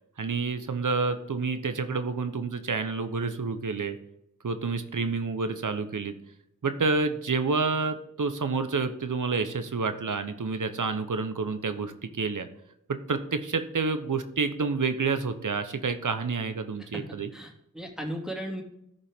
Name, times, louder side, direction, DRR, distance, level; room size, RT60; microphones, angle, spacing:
voice 1, 0.2-4.0 4.4-6.1 6.6-12.5 12.9-17.3, right 4 dB, 70° right, 9 dB, 1.0 m, -29 dB
voice 2, 17.3-18.6, equal, ahead, 0 dB, 2.6 m, -36 dB
14.0 x 5.4 x 3.7 m, 0.80 s
wide cardioid pair, 45°, 32 cm